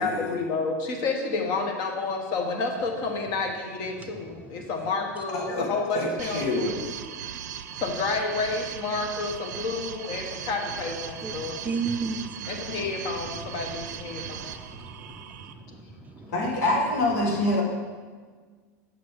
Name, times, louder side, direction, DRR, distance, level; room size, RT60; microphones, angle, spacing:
voice 1, 0.0-6.8 7.8-11.6 12.5-14.6 15.7-16.3, left 4 dB, 50° left, 3 dB, 1.4 m, -30 dB
voice 2, 5.3-5.7 5.9-6.8 16.3-17.6, left 2 dB, 80° left, 0 dB, 1.9 m, -26 dB
sound 1, 6.2-15.5, right 9 dB, 85° right, 0.6 m, -38 dB
voice 3, 11.6-12.7 14.1-15.2 15.5-16.3 17.2-17.3, right 4 dB, 15° right, 6 dB, 0.4 m, -34 dB
7.5 x 6.8 x 3.8 m, 1.5 s
supercardioid pair, 120°, 9 cm